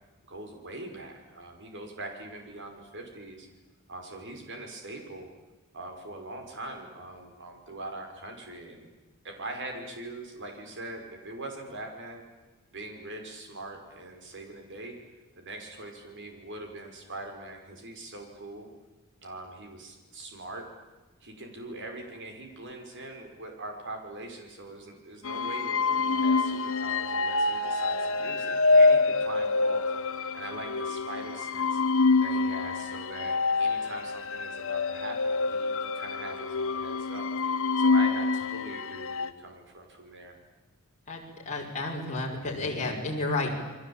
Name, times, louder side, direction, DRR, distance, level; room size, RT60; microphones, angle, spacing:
voice 1, 0.3-3.5 3.9-5.3 5.7-8.9 9.2-12.2 12.7-14.9 15.4-18.7 19.2-20.7 21.2-31.8 32.2-37.3 37.8-40.4, right 2 dB, 55° right, 4 dB, 5.9 m, -42 dB
sound 1, 25.2-39.3, left 3 dB, 65° left, 1.3 m, -26 dB
voice 2, 41.1-43.5, left 2 dB, 35° left, -2 dB, 5.6 m, -31 dB
29.5 x 22.5 x 8.9 m, 1.2 s
head